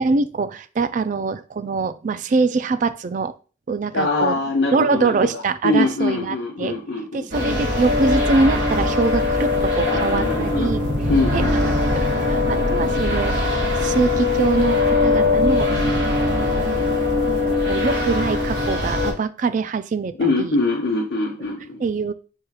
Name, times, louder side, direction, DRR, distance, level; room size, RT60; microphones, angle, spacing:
voice 1, 0.0-3.3 3.7-4.4 4.7-6.8 7.1-10.8 11.3-11.4 11.9-15.7 16.3-16.7 17.3-20.6 21.8-22.1, right 4 dB, 45° right, 12 dB, 0.3 m, -23 dB
voice 2, 3.9-5.3 5.6-7.1 9.8-10.7 11.1-11.7 20.2-21.8, left 3 dB, 70° left, -2 dB, 0.8 m, -23 dB
sound 1, 7.3-19.1, left 3 dB, 65° right, 2.4 m, -21 dB
4.5 x 2.4 x 4.7 m, 0.36 s
head